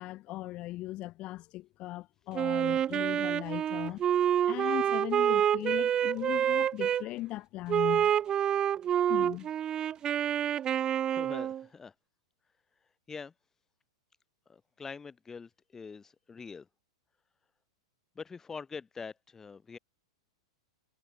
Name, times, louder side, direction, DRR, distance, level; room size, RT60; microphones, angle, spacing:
voice 1, 0.0-4.0 4.5-8.1 9.1-9.5, left 17 dB, 40° left, 6.1 m, -38 dB
Wind instrument woodwind instrument, 2.3-7.0 7.7-11.6, right 10 dB, 25° right, 2.2 m, -28 dB
voice 2, 11.1-11.9 13.1-13.3 14.5-16.7 18.2-19.8, left 5 dB, 15° left, 4.2 m, -44 dB
figure-of-eight pair, 100°, 3 cm